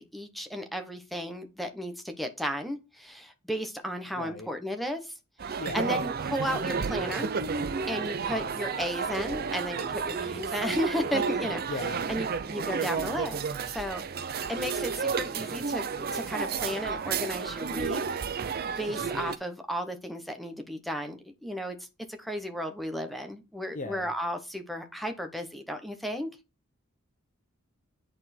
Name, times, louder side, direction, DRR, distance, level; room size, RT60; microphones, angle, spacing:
voice 1, 0.0-5.1 5.4-7.3 7.9-11.6 12.1-13.4 13.7-18.0 18.7-21.8 22.1-26.3, equal, ahead, 0.9 m, -34 dB
voice 2, 4.2-4.5 5.6-5.9 11.7-12.1 23.7-24.1, left 3 dB, 40° left, 0.7 m, -37 dB
sound 1, 5.4-19.4, right 5 dB, 45° right, 0.6 m, -32 dB
8.9 x 4.3 x 4.3 m
head